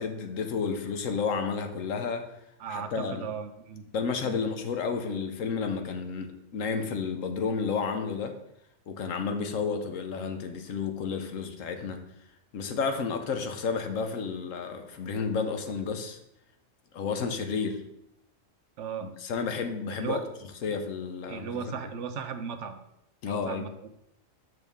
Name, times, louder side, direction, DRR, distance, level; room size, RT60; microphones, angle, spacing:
voice 1, 0.0-2.3 2.7-3.3 3.9-8.4 8.9-12.0 12.5-16.2 16.9-17.8 19.0-20.2 20.6-21.6 23.2-23.7, left 5 dB, 80° left, 6 dB, 1.2 m, -31 dB
voice 2, 2.6-3.8 4.2-4.4 18.8-19.1 20.0-20.2 21.3-22.8 23.3-23.9, right 7 dB, 70° right, 9 dB, 0.9 m, -36 dB
6.6 x 6.5 x 3.5 m, 0.81 s
omnidirectional pair, 1.3 m